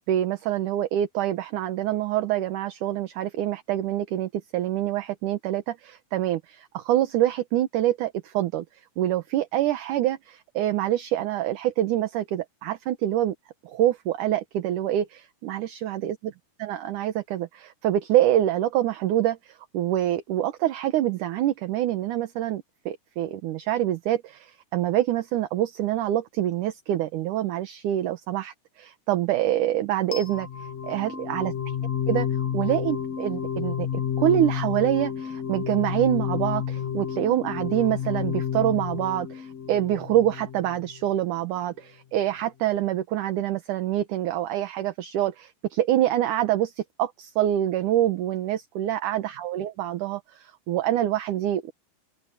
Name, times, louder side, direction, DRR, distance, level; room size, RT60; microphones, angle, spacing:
voice 1, 0.1-8.6 9.0-13.3 13.6-16.3 16.6-30.5 30.8-31.5 32.1-32.3 32.5-51.7, right 12 dB, 70° right, 2.5 m, -26 dB
sound 1, 30.1-41.1, left 9 dB, 55° left, 2.6 m, -30 dB
open air
omnidirectional pair, 4.0 m